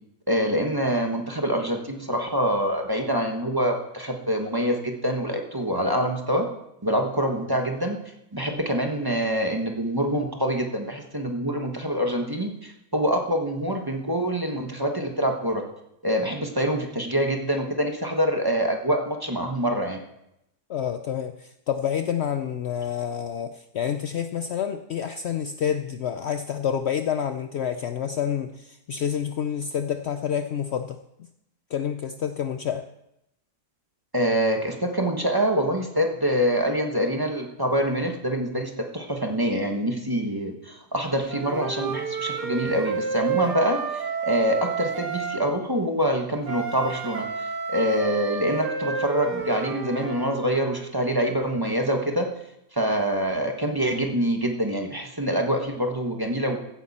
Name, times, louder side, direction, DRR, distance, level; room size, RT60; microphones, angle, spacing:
voice 1, 0.3-6.5 6.8-8.0 8.3-15.6 16.0-20.0 34.1-47.3 47.7-52.3 52.7-56.6, equal, 15° right, 2 dB, 1.2 m, -25 dB
voice 2, 20.7-31.0 31.7-32.8, left 8 dB, 80° left, 9 dB, 0.6 m, -28 dB
Wind instrument woodwind instrument, 41.3-45.4 46.4-50.4, right 6 dB, 80° right, 1.8 m, -30 dB
15.5 x 9.2 x 4.2 m, 0.83 s
omnidirectional pair, 1.8 m